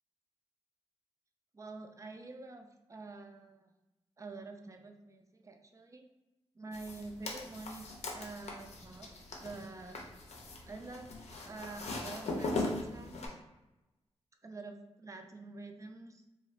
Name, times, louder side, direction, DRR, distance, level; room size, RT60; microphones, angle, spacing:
voice 1, 1.5-3.7 4.2-6.0 6.5-10.0 10.4-11.1 11.4-13.4 14.4-16.2, right 3 dB, 30° right, 4 dB, 0.4 m, -47 dB
sound 1, 6.7-13.3, left 2 dB, 80° left, 0.5 m, -40 dB
2.4 x 2.4 x 3.1 m, 1.0 s
cardioid pair, 80°, 11 cm